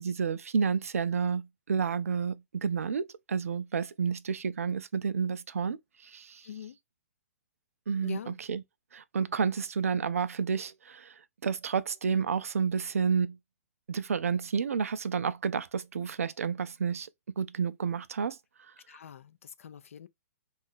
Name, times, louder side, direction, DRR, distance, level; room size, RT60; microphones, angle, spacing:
voice 1, 0.0-6.5 7.9-8.6 8.9-11.1 11.4-13.4 13.9-17.1 17.4-18.4, right 6 dB, 75° right, 0.4 m, -30 dB
voice 2, 6.4-6.8 8.0-8.4 18.9-20.1, left 10 dB, 65° left, 0.4 m, -44 dB
2.7 x 2.4 x 4.0 m
figure-of-eight pair, 115°, 8 cm